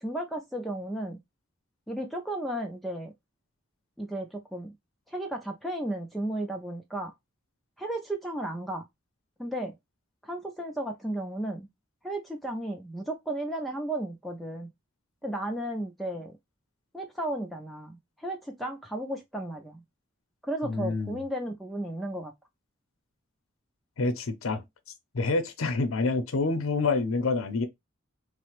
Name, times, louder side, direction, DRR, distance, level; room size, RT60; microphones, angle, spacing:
voice 1, 0.0-1.2 1.9-3.1 4.0-4.7 5.1-7.1 7.8-8.9 9.4-9.7 10.2-11.7 12.0-14.7 15.2-16.4 16.9-19.8 20.4-22.3, right 1 dB, ahead, 0.4 m, -34 dB
voice 2, 20.6-21.2 24.0-24.6 25.1-27.7, left 3 dB, 80° left, 0.6 m, -27 dB
3.3 x 2.1 x 3.0 m
head